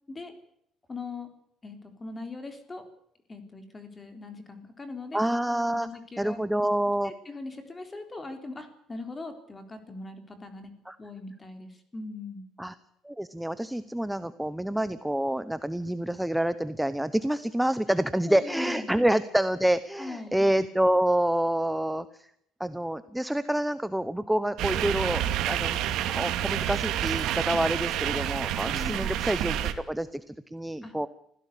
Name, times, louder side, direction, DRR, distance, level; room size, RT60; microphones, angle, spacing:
voice 1, 0.9-1.3 1.6-2.9 3.3-5.2 5.7-6.4 7.0-10.7 11.0-12.4 17.9-18.0 18.2-19.0 20.0-20.5 28.6-29.1 30.8-31.1, left 3 dB, 15° left, 7 dB, 3.7 m, -40 dB
voice 2, 5.1-5.9 6.2-7.1 10.9-11.0 12.6-12.7 13.0-22.3 22.6-25.8 26.1-31.1, right 1 dB, 5° right, 13 dB, 0.8 m, -27 dB
sound 1, 24.6-29.7, right 11 dB, 70° right, 2.5 m, -28 dB
25.5 x 16.5 x 8.4 m, 0.73 s
cardioid pair, 155°, 0 cm